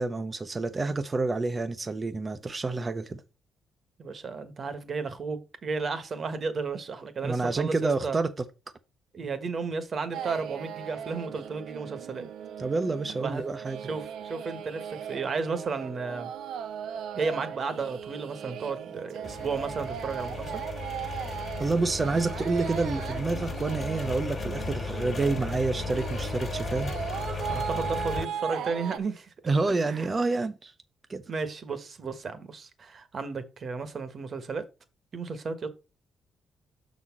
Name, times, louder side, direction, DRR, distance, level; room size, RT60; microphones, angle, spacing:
voice 1, 0.0-3.2 7.2-8.4 12.6-13.8 21.6-26.9 29.5-30.7 31.1-31.2, right 3 dB, 30° right, 0.7 m, -28 dB
voice 2, 4.0-8.2 9.1-12.3 13.2-13.4 13.9-16.3 17.1-20.6 27.5-29.3 29.8-30.1 31.3-34.6 35.1-35.7, right 4 dB, 45° right, 1.3 m, -33 dB
sound 1, 10.1-29.0, right 8 dB, 80° right, 0.6 m, -38 dB
sound 2, 19.2-28.2, left 4 dB, 40° left, 1.6 m, -35 dB
6.2 x 4.1 x 5.9 m
cardioid pair, 90°, 0 cm